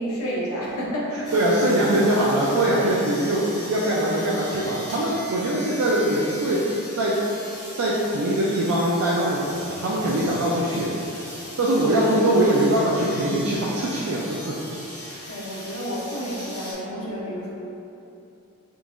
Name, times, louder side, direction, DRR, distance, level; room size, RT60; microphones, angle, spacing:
voice 1, 0.0-1.7 2.5-2.6 15.3-17.5, equal, 70° left, -5 dB, 0.7 m, -30 dB
sound 1, 1.2-16.7, equal, 20° left, 0.8 m, -39 dB
voice 2, 1.3-6.6 6.9-7.2 7.7-11.0 11.6-14.5, right 1 dB, 70° right, -6 dB, 0.4 m, -22 dB
3.8 x 2.8 x 2.4 m, 2.8 s
head